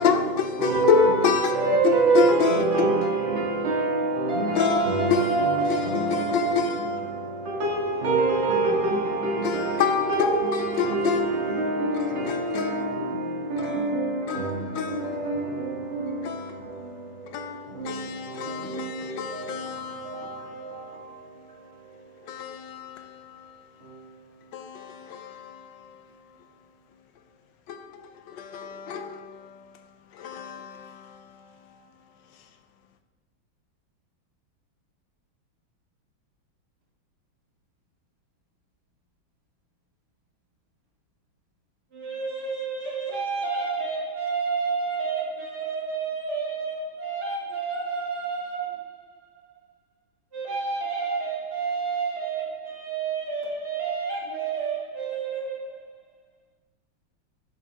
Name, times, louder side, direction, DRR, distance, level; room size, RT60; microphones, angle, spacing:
voice 1, 0.0-3.1 4.5-7.6 9.4-13.2 13.6-15.4 16.2-21.1 22.2-24.0 24.5-26.5 27.7-31.9 32.3-32.4, left 6 dB, 70° left, 1.3 m, -29 dB
voice 2, 0.6-22.2 23.8-24.2, right 3 dB, 70° right, 2.6 m, -27 dB
voice 3, 41.9-49.3 50.3-55.9, right 5 dB, 50° right, 2.8 m, -30 dB
10.5 x 7.9 x 3.5 m
omnidirectional pair, 2.3 m